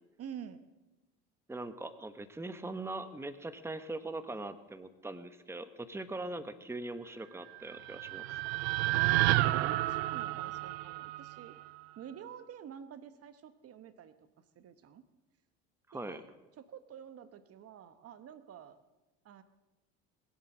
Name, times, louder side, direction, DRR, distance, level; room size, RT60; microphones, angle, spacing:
voice 1, 0.2-0.6 8.9-11.6 12.0-14.1 14.6-15.0 15.9-18.8 19.2-19.4, right 8 dB, 50° right, 12 dB, 1.1 m, -48 dB
voice 2, 1.5-8.2 15.9-16.2, right 2 dB, 10° right, 11 dB, 1.1 m, -41 dB
sound 1, 7.5-11.8, right 17 dB, 85° right, 0.6 m, -31 dB
21.0 x 8.2 x 7.4 m, 1.1 s
supercardioid pair, 80°, 32 cm